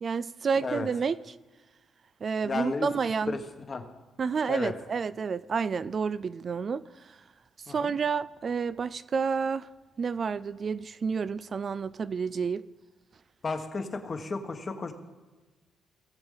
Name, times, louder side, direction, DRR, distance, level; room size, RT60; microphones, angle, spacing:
voice 1, 0.0-1.2 2.2-3.4 4.2-7.2 7.7-9.7 10.0-12.7, right 5 dB, 45° right, 0.3 m, -30 dB
voice 2, 2.4-2.9 3.3-3.4 3.7-3.8 4.5-4.7 7.7-7.9 13.4-14.9, left 4 dB, 35° left, 1.3 m, -33 dB
19.5 x 7.0 x 3.9 m
cardioid pair, 90°, 0 cm